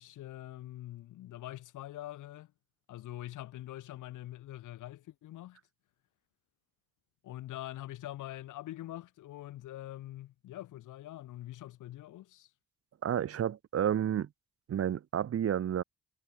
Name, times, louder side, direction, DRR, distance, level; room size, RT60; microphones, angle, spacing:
voice 1, 0.0-2.5 2.9-5.6 7.2-12.5, left 14 dB, 85° left, 3.7 m, -44 dB
voice 2, 13.0-14.3 14.7-15.8, right 9 dB, 50° right, 1.1 m, -30 dB
cardioid pair, 90°, 30 cm